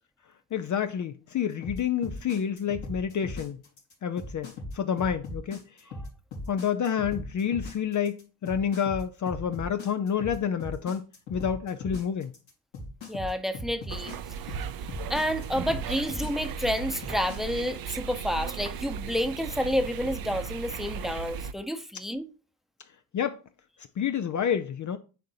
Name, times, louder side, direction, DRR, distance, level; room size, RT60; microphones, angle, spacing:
voice 1, 0.5-3.6 4.0-5.9 6.5-11.0 11.3-12.3 23.1-23.4 24.0-25.0, left 8 dB, 40° left, 0.6 m, -29 dB
sound 1, 1.6-17.4, left 2 dB, 90° left, 3.1 m, -38 dB
voice 2, 13.1-14.1 14.5-14.6 15.1-22.3, equal, ahead, 0.9 m, -30 dB
sound 2, 13.9-21.5, right 7 dB, 50° right, 0.6 m, -36 dB
10.0 x 3.8 x 2.8 m
hypercardioid pair, 45°, 47 cm